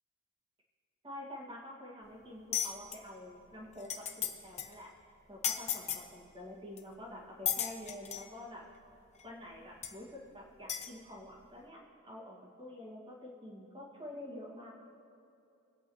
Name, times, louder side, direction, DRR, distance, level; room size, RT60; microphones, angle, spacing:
voice 1, 1.0-4.9 5.3-8.6 9.2-14.7, left 1 dB, 25° right, -4 dB, 2.1 m, -48 dB
sound 1, 2.5-3.0 3.5-3.6 3.8-4.3 4.6-4.7 5.4-6.0 6.8-6.9 7.5-8.3 9.2-9.3 9.8-9.9 10.7-10.9, left 9 dB, 35° left, 0.8 m, -34 dB
21.0 x 8.3 x 3.2 m, 2.6 s
head